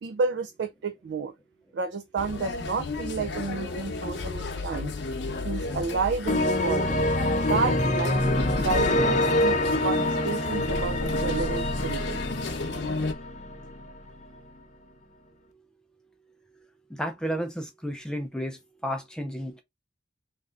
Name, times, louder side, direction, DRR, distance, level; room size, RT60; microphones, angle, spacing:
voice 1, 0.0-1.3 1.7-4.9 5.4-7.1 7.5-12.2, right 4 dB, 70° right, 0.4 m, -31 dB
sound 1, 2.2-13.1, left 3 dB, 90° left, 0.8 m, -33 dB
sound 2, 6.3-13.9, left 1 dB, 45° left, 0.6 m, -26 dB
voice 2, 16.9-19.6, equal, 5° left, 0.5 m, -32 dB
3.2 x 2.5 x 3.6 m
head